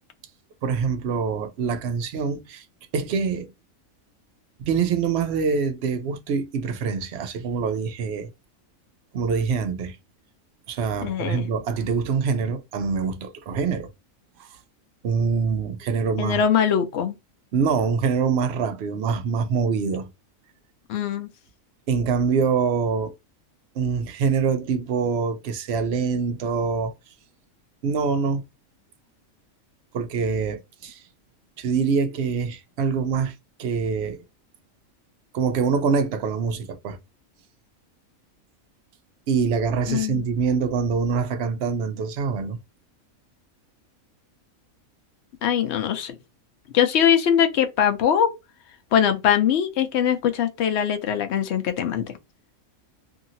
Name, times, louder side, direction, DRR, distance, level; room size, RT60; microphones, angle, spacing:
voice 1, 0.6-2.6 2.9-3.5 4.6-8.3 9.1-10.0 10.7-13.9 14.4-14.5 15.0-16.4 17.5-20.1 21.9-23.1 23.8-26.9 27.8-28.4 29.9-31.0 31.6-33.3 33.6-34.2 35.3-37.0 39.3-42.6, right 5 dB, 65° right, 0.7 m, -24 dB
voice 2, 11.0-11.5 16.2-17.2 20.9-21.3 39.9-40.3 45.4-46.2 46.7-48.3 48.9-52.1, left 9 dB, 65° left, 0.7 m, -22 dB
2.8 x 2.7 x 2.6 m
omnidirectional pair, 1.5 m